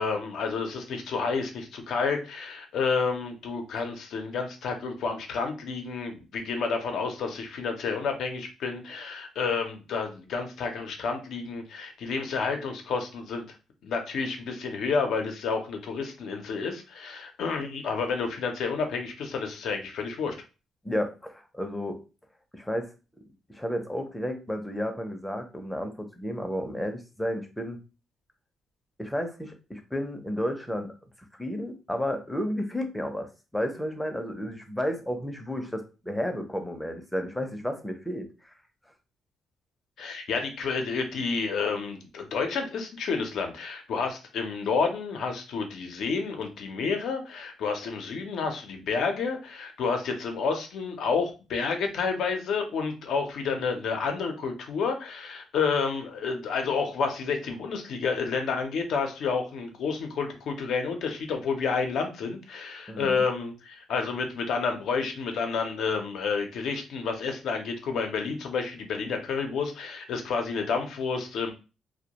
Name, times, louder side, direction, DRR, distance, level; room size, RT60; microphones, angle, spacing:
voice 1, 0.0-13.5 13.8-20.3 40.0-71.5, left 5 dB, 75° left, 5 dB, 0.6 m, -30 dB
voice 2, 20.8-22.0 22.5-22.9 23.5-27.8 29.0-30.9 31.3-38.5 62.9-63.2, equal, 5° left, 5 dB, 0.6 m, -32 dB
2.2 x 2.1 x 2.8 m, 0.31 s
cardioid pair, 90°, 0 cm